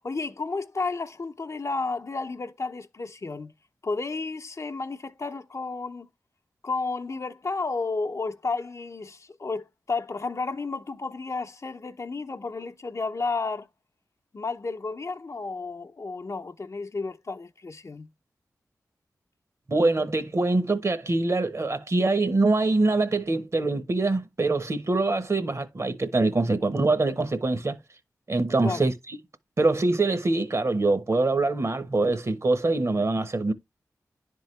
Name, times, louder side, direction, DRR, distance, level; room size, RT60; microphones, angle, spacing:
voice 1, 0.0-3.5 3.8-6.1 6.6-13.7 14.3-18.1 28.6-28.8, left 3 dB, 50° left, 0.7 m, -32 dB
voice 2, 19.7-27.8 28.3-29.2 29.6-33.5, right 2 dB, 45° right, 1.2 m, -24 dB
10.5 x 3.8 x 3.2 m
cardioid pair, 40°, 7 cm